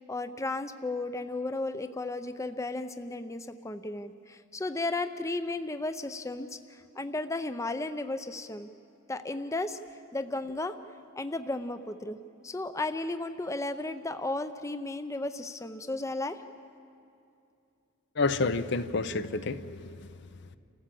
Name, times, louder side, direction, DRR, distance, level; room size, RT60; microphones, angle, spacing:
voice 1, 0.1-8.7 9.1-9.8 10.1-10.8 11.2-12.2 12.4-16.4, left 2 dB, 15° left, 0.6 m, -34 dB
voice 2, 18.2-20.1, left 3 dB, 60° left, 0.7 m, -29 dB
28.5 x 14.5 x 7.6 m
head